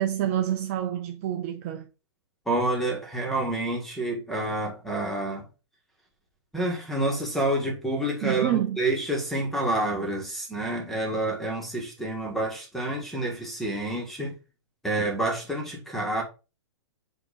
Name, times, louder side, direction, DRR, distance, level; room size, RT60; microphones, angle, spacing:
voice 1, 0.0-1.9 8.2-8.8, right 11 dB, 30° right, 0.6 m, -27 dB
voice 2, 2.4-5.4 6.5-14.4 14.8-16.2, right 1 dB, ahead, 1.6 m, -28 dB
8.0 x 2.9 x 5.0 m
hypercardioid pair, 160°, 14 cm